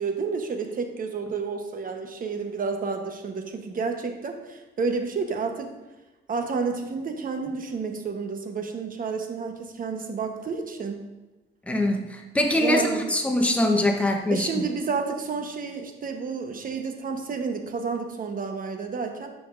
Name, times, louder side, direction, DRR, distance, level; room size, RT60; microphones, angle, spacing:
voice 1, 0.0-5.7 6.3-11.0 12.5-13.1 14.3-19.3, right 4 dB, 45° right, 5 dB, 1.0 m, -30 dB
voice 2, 11.7-14.6, left 1 dB, 5° left, 2 dB, 0.9 m, -23 dB
10.5 x 5.1 x 2.5 m, 1.1 s
cardioid pair, 90°, 20 cm